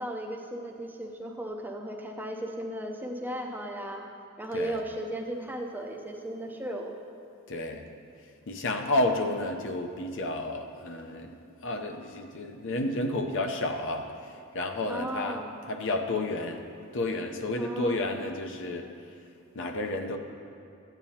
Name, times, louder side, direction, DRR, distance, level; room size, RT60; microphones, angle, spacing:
voice 1, 0.0-4.1 4.4-6.9 14.9-15.5 17.6-18.1, right 1 dB, 10° right, 2 dB, 0.5 m, -35 dB
voice 2, 7.5-7.8 8.5-11.3 11.6-14.1 14.5-15.4 15.7-16.6 16.9-18.9 19.6-20.2, left 2 dB, 60° left, 5 dB, 0.7 m, -31 dB
14.0 x 9.0 x 2.8 m, 2.5 s
head